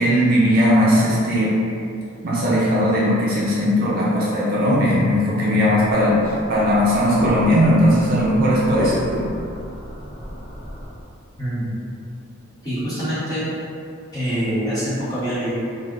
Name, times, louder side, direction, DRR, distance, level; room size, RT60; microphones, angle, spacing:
voice 1, 0.0-1.5 2.2-9.2, equal, 45° right, -6 dB, 0.5 m, -18 dB
sound 1, 5.8-10.9, equal, 70° left, 1.1 m, -32 dB
voice 2, 11.4-11.7 12.6-13.4 14.1-15.5, equal, 20° left, -14 dB, 1.3 m, -25 dB
3.3 x 2.4 x 2.5 m, 2.5 s
head